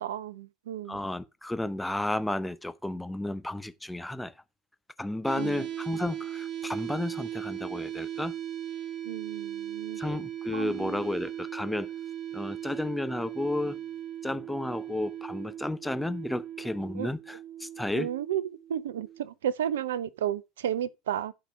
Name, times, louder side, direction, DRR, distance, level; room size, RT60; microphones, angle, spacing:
voice 1, 0.0-1.0 5.4-5.6 9.0-10.0 10.5-11.0 17.0-17.1 17.9-21.3, right 10 dB, 70° right, 0.7 m, -33 dB
voice 2, 0.9-4.3 5.0-8.3 10.0-11.9 12.3-13.8 14.2-18.1, left 1 dB, 5° left, 0.8 m, -32 dB
sound 1, 5.2-19.2, right 11 dB, 40° right, 1.3 m, -38 dB
12.0 x 5.1 x 5.0 m
figure-of-eight pair, 75°, 0 cm